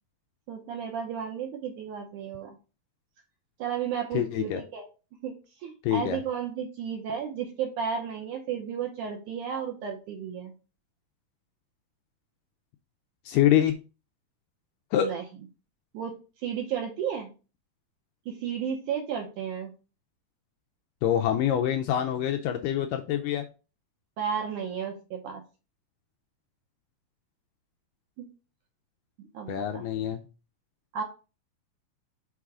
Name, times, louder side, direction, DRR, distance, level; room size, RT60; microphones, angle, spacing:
voice 1, 0.5-2.6 3.6-4.9 5.2-10.5 15.0-15.2 15.9-17.3 18.3-19.7 24.2-25.4 28.2-28.3 29.2-29.8 30.9-31.0, right 7 dB, 70° right, 2 dB, 2.0 m, -33 dB
voice 2, 4.1-4.6 5.8-6.2 13.3-13.7 14.9-15.1 21.0-23.5 29.5-30.2, left 11 dB, 80° left, 5 dB, 2.0 m, -25 dB
6.0 x 3.7 x 4.7 m, 0.33 s
omnidirectional pair, 4.3 m